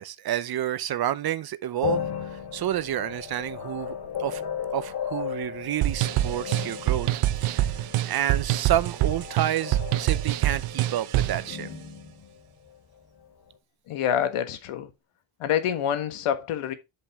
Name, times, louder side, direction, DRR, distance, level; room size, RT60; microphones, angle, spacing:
voice 1, 0.0-2.0 2.5-3.9 4.2-4.4 4.7-11.7, right 12 dB, 50° right, 0.7 m, -29 dB
sound 1, 1.8-13.2, left 8 dB, 50° left, 1.8 m, -36 dB
sound 2, 5.8-11.4, right 14 dB, 85° right, 0.9 m, -25 dB
voice 2, 13.9-14.9 15.4-16.7, left 9 dB, 85° left, 1.5 m, -26 dB
10.0 x 5.4 x 3.5 m
cardioid pair, 155°, 49 cm